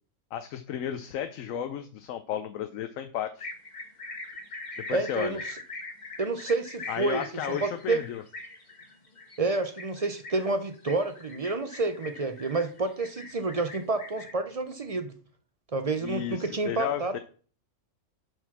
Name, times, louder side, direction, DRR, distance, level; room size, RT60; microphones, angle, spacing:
voice 1, 0.3-3.5 4.8-5.4 6.9-8.2 16.0-17.2, left 10 dB, 80° left, 9 dB, 1.0 m, -33 dB
sound 1, 3.4-14.3, left 2 dB, 35° left, 1.3 m, -42 dB
voice 2, 4.9-5.6 6.2-8.0 9.4-15.1 15.7-17.2, right 3 dB, 40° right, 10 dB, 0.6 m, -29 dB
7.7 x 4.9 x 5.9 m, 0.42 s
omnidirectional pair, 1.4 m